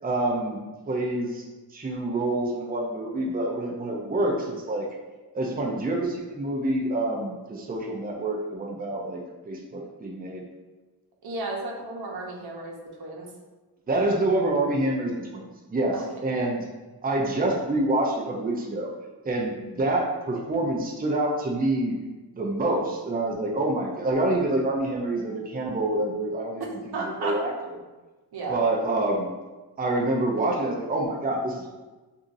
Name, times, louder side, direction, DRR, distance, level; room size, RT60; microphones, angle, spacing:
voice 1, 0.0-1.4 1.7-4.9 5.3-10.4 13.9-16.0 16.2-16.6 17.0-18.9 19.2-22.0 22.3-26.8 27.0-27.5 28.5-29.3 29.8-31.7, right 2 dB, 20° right, -1 dB, 0.7 m, -27 dB
voice 2, 5.5-5.8 11.2-13.3 15.9-16.0 26.9-27.4 28.3-28.6, right 2 dB, 65° right, -2 dB, 1.1 m, -33 dB
6.1 x 2.7 x 2.7 m, 1.2 s
cardioid pair, 70°, 42 cm